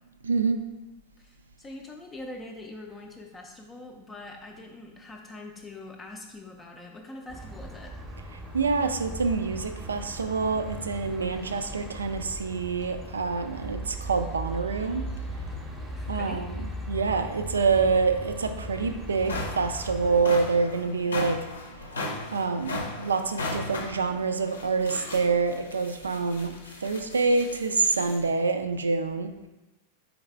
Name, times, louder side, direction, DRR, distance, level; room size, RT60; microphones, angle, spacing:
voice 1, 0.2-0.6 8.5-15.1 16.1-21.5 22.3-26.5 26.8-29.3, right 4 dB, 75° right, 8 dB, 0.3 m, -26 dB
voice 2, 1.2-7.9 15.9-16.4, left 2 dB, 15° left, 1 dB, 0.4 m, -43 dB
sound 1, 7.3-20.3, right 1 dB, 15° right, 0.7 m, -38 dB
sound 2, 18.5-18.6 19.0-28.3, left 2 dB, 70° left, 0.7 m, -37 dB
3.9 x 3.9 x 3.3 m, 1.1 s
figure-of-eight pair, 90°, 0 cm